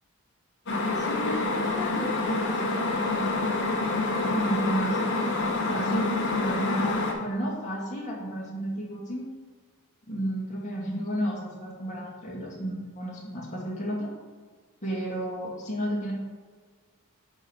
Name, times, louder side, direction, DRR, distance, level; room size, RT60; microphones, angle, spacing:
sound 1, 0.7-7.1, left 3 dB, 55° left, 1.1 m, -27 dB
voice 1, 1.0-5.0 5.7-9.3 10.1-14.1 14.8-16.1, right 1 dB, 35° left, -4 dB, 1.9 m, -32 dB
8.8 x 3.2 x 5.5 m, 1.5 s
head